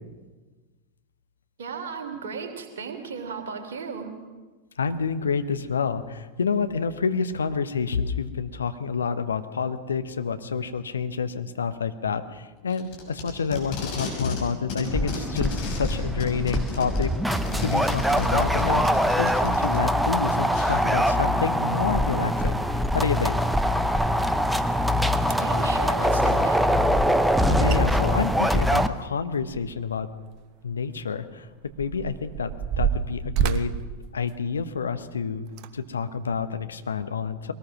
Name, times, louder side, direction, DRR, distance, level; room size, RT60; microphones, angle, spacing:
voice 1, 1.6-4.1 18.7-18.9 25.3-26.7, right 5 dB, 60° right, 3 dB, 3.4 m, -35 dB
voice 2, 4.8-17.1 17.6-18.8 19.2-22.6 22.9-23.3 27.5-30.1 30.6-31.5 31.8-32.5 32.8-33.7 34.1-35.5 35.7-37.5, left 5 dB, 70° left, 10 dB, 1.1 m, -28 dB
Packing tape duct tape, 12.7-14.4 14.7-19.8 20.5-20.7, left 4 dB, 45° left, 6.3 m, -34 dB
sound 1, 14.9-28.9, equal, 5° right, 0.9 m, -23 dB
sound 2, 25.2-25.6 27.4-27.5 27.7-27.8 28.1-29.9 30.3-30.4 31.1-34.9 35.5-35.7 36.3-36.4, right 8 dB, 40° right, 1.0 m, -29 dB
22.5 x 19.0 x 6.1 m, 1.3 s
figure-of-eight pair, 90°, 0 cm